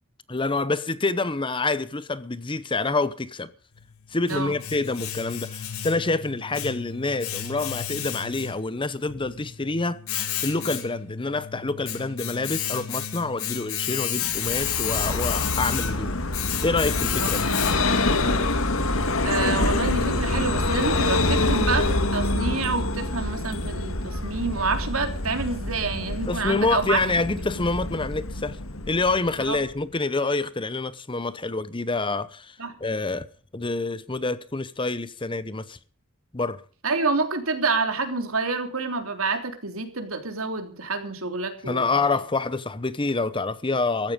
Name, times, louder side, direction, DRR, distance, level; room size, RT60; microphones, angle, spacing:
voice 1, 0.3-3.5 4.1-10.0 10.4-16.1 16.6-17.5 26.3-28.6 28.9-33.3 33.5-35.8 36.3-36.6 41.6-44.1, left 3 dB, 25° left, 0.8 m, -27 dB
Domestic sounds home sounds, 3.8-18.1, left 10 dB, 85° left, 2.5 m, -32 dB
Vehicle, 14.3-29.8, left 2 dB, 70° left, 1.9 m, -26 dB
voice 2, 19.2-27.0 29.5-29.6 32.6-32.8 36.8-42.2, right 4 dB, 75° right, 3.3 m, -28 dB
15.0 x 14.5 x 5.2 m
head